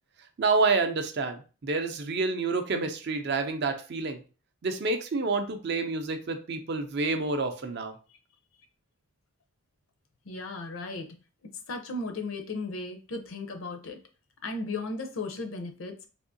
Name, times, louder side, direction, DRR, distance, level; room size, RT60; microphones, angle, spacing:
voice 1, 0.4-4.2 4.6-7.9, right 3 dB, 50° right, 6 dB, 0.4 m, -28 dB
voice 2, 10.3-11.1 11.7-14.0 14.4-15.9, left 2 dB, 65° left, 5 dB, 0.6 m, -35 dB
3.5 x 2.7 x 2.6 m, 0.36 s
head